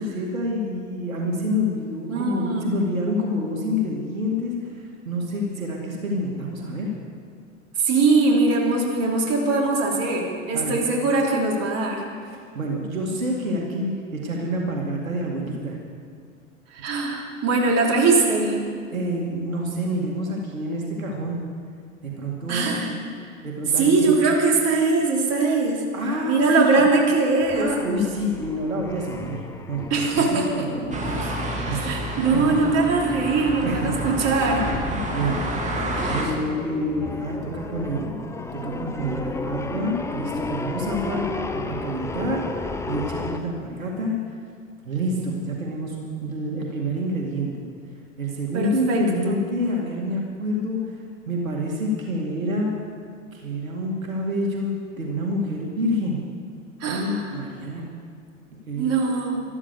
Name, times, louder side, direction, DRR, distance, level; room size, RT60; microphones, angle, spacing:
voice 1, 0.0-6.9 10.5-10.8 12.3-15.8 18.9-21.4 22.0-22.7 23.4-24.1 25.9-26.8 27.5-29.4 29.7-31.9 32.3-32.5 33.6-33.9 34.5-38.1 38.5-44.2 44.8-47.7 48.2-50.8 51.3-52.7 53.3-56.2 56.8-57.9 58.7-59.0, equal, 85° right, -1 dB, 2.3 m, -28 dB
voice 2, 2.1-2.7 7.8-12.0 16.7-18.6 22.5-22.9 23.8-25.8 26.2-27.7 29.9-30.7 31.6-34.6 36.0-36.2 48.5-49.4 56.8-57.3 58.8-59.4, right 3 dB, 40° right, -1 dB, 3.4 m, -21 dB
sound 1, 27.4-43.4, left 3 dB, 5° left, 0.8 m, -34 dB
sound 2, 30.9-36.3, right 1 dB, 20° right, 2.5 m, -29 dB
13.5 x 13.0 x 6.8 m, 2.1 s
figure-of-eight pair, 90°, 40 cm